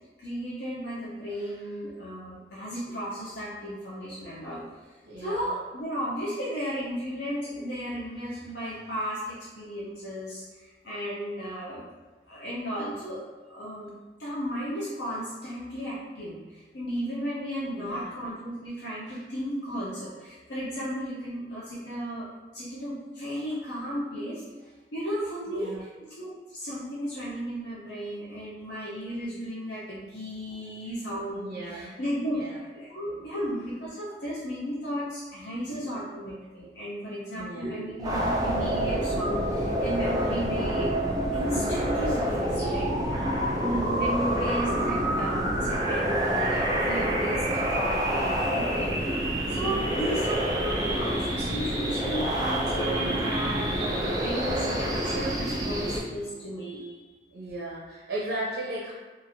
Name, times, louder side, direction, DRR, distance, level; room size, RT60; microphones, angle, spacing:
voice 1, 0.0-4.6 5.2-11.9 12.3-13.2 13.5-13.9 14.2-22.3 22.5-40.9 41.3-42.8 43.5-49.2 49.5-53.9 54.2-57.0, equal, 70° left, -8 dB, 0.5 m, -34 dB
voice 2, 5.0-5.5 17.7-18.1 25.5-25.8 30.5-30.6 31.3-31.9 32.3-32.6 33.1-33.4 35.7-36.0 37.3-38.0 42.1-43.8 49.9-50.2 56.3-56.6 57.3-58.9, right 1 dB, 85° right, -5 dB, 0.6 m, -38 dB
sound 1, 38.0-56.0, right 1 dB, 20° right, 0.4 m, -27 dB
3.0 x 2.4 x 2.6 m, 1.3 s
head